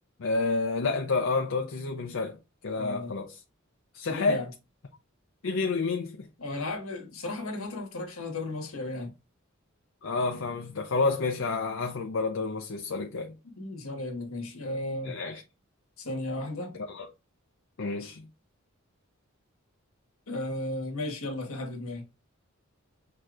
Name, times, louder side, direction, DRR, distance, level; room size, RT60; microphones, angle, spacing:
voice 1, 0.2-2.4 2.6-3.4 3.9-4.4 5.4-6.3 10.0-13.4 15.0-15.4 16.9-17.1 17.8-18.3, left 3 dB, 70° left, 0.6 m, -29 dB
voice 2, 2.8-3.1 4.1-4.5 6.4-9.1 13.6-15.2 16.0-16.8 20.3-22.0, left 2 dB, 85° left, 1.4 m, -35 dB
6.4 x 2.8 x 2.5 m
head